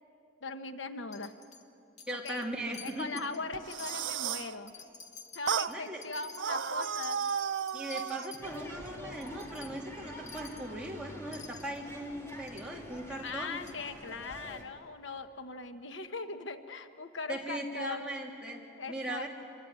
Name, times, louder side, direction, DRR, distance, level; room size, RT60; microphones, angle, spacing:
voice 1, 0.4-1.3 2.1-2.5 2.8-4.8 5.3-7.2 13.2-18.1 18.8-19.3, left 3 dB, 80° left, 8 dB, 1.2 m, -40 dB
Wind chime, 1.1-1.6 2.0-2.5 2.7-3.4 3.7-8.4 8.8-8.9 9.2-9.7 10.3-10.7 11.3-11.8 12.5-12.7 13.3-13.4 13.7-13.8, left 4 dB, 40° left, 2.0 m, -50 dB
voice 2, 2.1-3.1 5.7-6.0 7.7-13.6 17.3-18.6 18.9-19.3, right 1 dB, 5° right, -2 dB, 3.0 m, -39 dB
sound 1, 3.5-4.5 5.5-5.7 6.4-8.3, right 7 dB, 85° right, 0.6 m, -33 dB
sound 2, 8.4-14.6, equal, 15° left, 2.7 m, -47 dB
27.0 x 23.0 x 9.7 m, 2.8 s
head